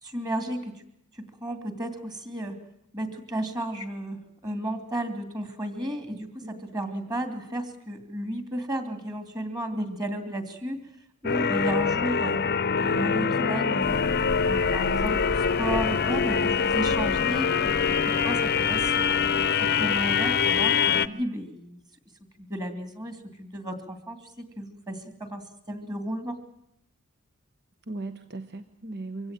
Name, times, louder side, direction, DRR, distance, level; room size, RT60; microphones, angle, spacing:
voice 1, 0.0-0.7 1.1-2.6 2.9-10.8 11.2-12.4 12.8-14.0 14.4-21.8 22.4-26.4, right 1 dB, 20° right, 8 dB, 2.8 m, -33 dB
voice 2, 6.4-6.9 9.7-10.0 20.9-21.2 27.9-29.3, right 2 dB, 50° right, 10 dB, 1.1 m, -38 dB
sound 1, 11.2-21.1, left 6 dB, 45° left, 0.8 m, -24 dB
sound 2, 13.8-19.5, equal, 90° right, 2.7 m, -39 dB
24.5 x 16.5 x 9.0 m, 0.76 s
head